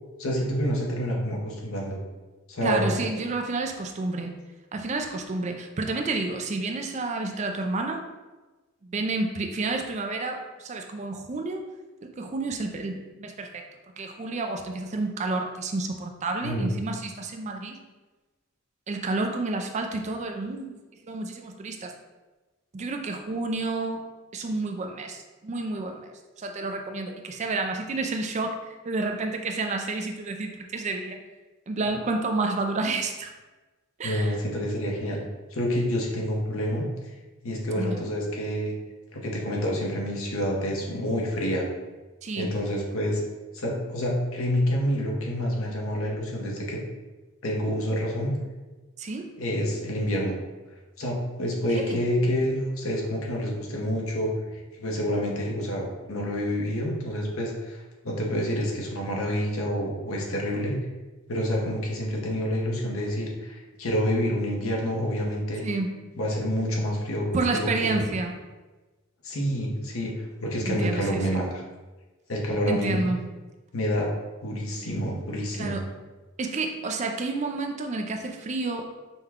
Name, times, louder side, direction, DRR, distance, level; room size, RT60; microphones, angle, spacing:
voice 1, 0.2-2.0 2.5-3.0 16.4-16.7 31.8-31.9 34.0-35.2 35.5-36.9 37.4-38.7 39.1-41.7 42.3-43.2 43.5-46.8 47.4-48.3 49.4-50.4 51.0-54.3 54.8-60.8 61.3-65.7 66.2-68.1 69.2-70.1 70.4-71.5 72.3-73.0 73.7-74.1 74.4-75.8, equal, 75° left, -1 dB, 0.9 m, -28 dB
voice 2, 2.6-4.4 4.7-8.0 8.8-11.6 12.0-13.6 14.0-17.8 18.9-20.8 21.0-21.9 22.7-24.0 24.3-31.2 31.7-33.3 34.0-34.4 37.8-38.1 42.2-42.6 49.0-49.3 51.7-52.0 65.6-65.9 67.3-68.4 70.7-71.3 72.7-73.3 75.5-75.8 76.4-78.9, right 3 dB, 30° right, 4 dB, 0.3 m, -30 dB
5.4 x 2.2 x 3.5 m, 1.2 s
head